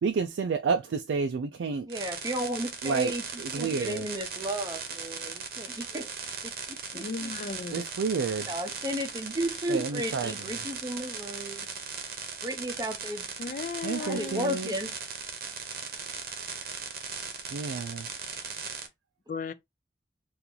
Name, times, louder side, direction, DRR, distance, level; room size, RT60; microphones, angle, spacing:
voice 1, 0.0-1.9 2.8-3.1 3.4-4.0 7.7-8.5 9.7-10.3 13.8-14.7 17.5-18.1, right 5 dB, 90° right, 0.4 m, -30 dB
voice 2, 1.9-3.2 3.5-6.1 6.9-7.3 8.5-11.7 12.4-13.3 14.0-14.9, right 1 dB, 20° right, 0.6 m, -33 dB
sound 1, 1.9-18.9, right 5 dB, 55° right, 0.8 m, -38 dB
voice 3, 6.9-7.9 13.4-14.7 19.3-19.5, left 4 dB, 45° left, 0.3 m, -36 dB
2.8 x 2.5 x 3.7 m
head